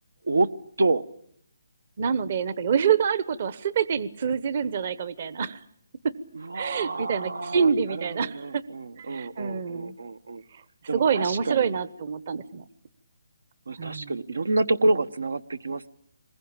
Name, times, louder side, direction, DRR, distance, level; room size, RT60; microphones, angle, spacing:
voice 1, 2.0-5.6 6.5-8.6 9.0-9.9 10.9-12.6 13.8-14.1, right 7 dB, 40° right, 17 dB, 1.0 m, -26 dB
voice 2, 6.3-10.4 10.9-11.8 13.7-15.9, right 2 dB, 80° right, 16 dB, 1.2 m, -28 dB
26.0 x 21.0 x 8.8 m, 0.68 s
hypercardioid pair, 165°, 0 cm